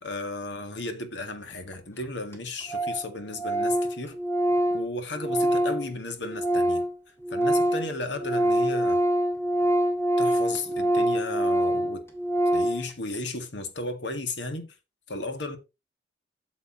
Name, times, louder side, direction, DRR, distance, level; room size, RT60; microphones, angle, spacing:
voice 1, 0.0-4.2 4.7-6.8 7.3-9.0 10.2-12.0 12.5-14.7 15.1-15.6, left 2 dB, 70° left, 1.8 m, -34 dB
Organ, 1.7-1.8 2.0-2.1 2.3-2.4 2.7-3.1 3.3-6.9 7.2-12.9, right 1 dB, 15° left, 1.8 m, -25 dB
8.6 x 7.0 x 3.9 m
head